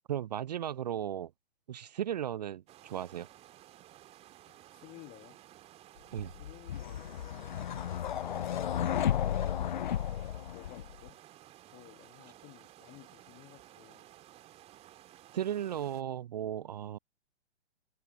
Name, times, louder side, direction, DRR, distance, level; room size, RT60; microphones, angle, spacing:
voice 1, 0.1-1.3 1.7-2.6 2.9-3.3 6.1-6.3 15.3-17.0, right 10 dB, 40° right, 0.6 m, -35 dB
sound 1, 2.7-16.0, right 14 dB, 20° right, 2.3 m, -55 dB
voice 2, 4.5-5.4 6.2-7.7 10.5-11.2 11.7-14.1, left 23 dB, 20° left, 1.3 m, -55 dB
sound 2, 6.2-11.1, left 10 dB, 45° left, 0.5 m, -33 dB
figure-of-eight pair, 120°, 33 cm